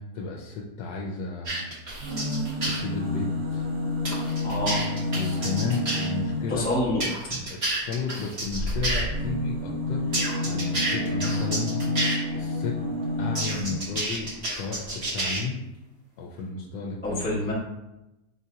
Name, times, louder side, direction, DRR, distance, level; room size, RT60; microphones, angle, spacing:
voice 1, 0.0-1.8 2.6-3.7 5.2-6.7 7.5-11.8 12.3-12.8 13.2-15.6 16.2-17.4, left 4 dB, 85° left, -1 dB, 1.3 m, -33 dB
sound 1, 1.5-2.8 4.1-6.1 7.0-9.0 10.1-12.2 13.4-15.4, right 1 dB, 40° right, 1.4 m, -29 dB
sound 2, 1.9-6.8 8.4-13.9 14.8-14.9 15.1-15.2, left 1 dB, 55° right, 1.3 m, -29 dB
voice 2, 4.4-4.8 6.5-7.4 17.0-17.5, left 1 dB, 5° left, -6 dB, 0.8 m, -27 dB
3.9 x 2.8 x 4.7 m, 0.95 s
omnidirectional pair, 1.9 m